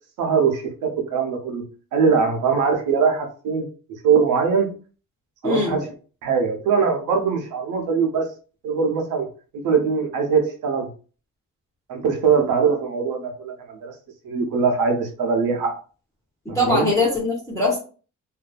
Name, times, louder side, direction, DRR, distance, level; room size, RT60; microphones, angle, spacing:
voice 1, 0.2-1.6 1.9-3.7 4.0-4.7 5.4-5.9 6.2-8.3 8.6-9.3 9.6-10.9 11.9-13.9 14.2-15.8 16.5-16.9, right 5 dB, 90° right, 4 dB, 0.7 m, -21 dB
voice 2, 5.4-5.8 16.4-17.8, left 2 dB, 10° left, -5 dB, 1.1 m, -21 dB
2.6 x 2.3 x 2.4 m, 0.37 s
cardioid pair, 90°, 30 cm